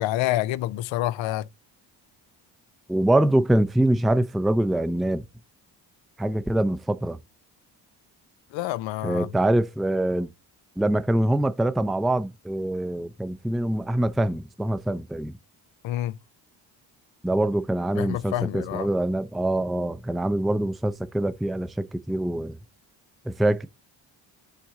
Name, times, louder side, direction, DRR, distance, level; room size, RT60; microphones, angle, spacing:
voice 1, 0.0-1.5 8.5-9.3 15.8-16.2 18.0-18.9, left 15 dB, 65° left, 0.6 m, -27 dB
voice 2, 2.9-5.2 6.2-7.2 9.0-10.3 10.8-15.4 17.2-22.6 23.3-23.7, right 1 dB, ahead, 0.5 m, -24 dB
7.5 x 3.5 x 4.0 m
supercardioid pair, 50°, 50 cm